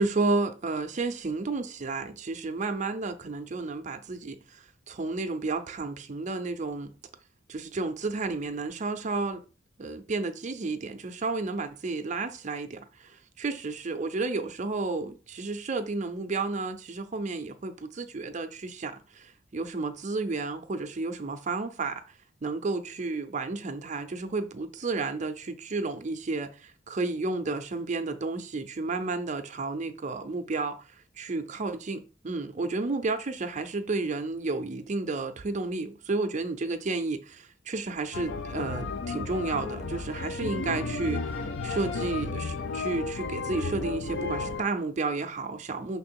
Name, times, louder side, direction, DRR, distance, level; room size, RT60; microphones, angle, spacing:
voice 1, 0.0-6.9 7.5-9.4 9.8-22.2 22.4-46.0, right 3 dB, 40° right, 0.5 m, -32 dB
sound 1, 38.1-44.6, left 3 dB, 70° left, 0.6 m, -33 dB
5.8 x 3.8 x 4.4 m
head